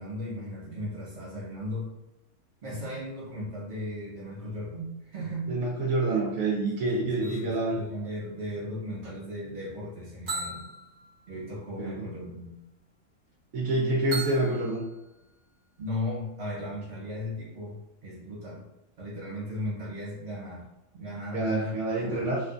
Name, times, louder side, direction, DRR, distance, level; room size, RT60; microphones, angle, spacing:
voice 1, 0.0-1.9 2.6-5.5 6.8-10.7 11.3-12.5 15.8-18.7 19.0-20.7 20.9-22.3, left 1 dB, 55° right, -6 dB, 1.3 m, -36 dB
voice 2, 5.5-7.8 11.8-12.0 13.5-14.8 21.3-22.4, right 2 dB, 75° right, -4 dB, 1.0 m, -27 dB
sound 1, 7.2-9.2 10.3-12.0 14.1-15.6, right 3 dB, 40° right, 0.8 m, -40 dB
3.1 x 2.2 x 2.5 m, 0.94 s
omnidirectional pair, 1.5 m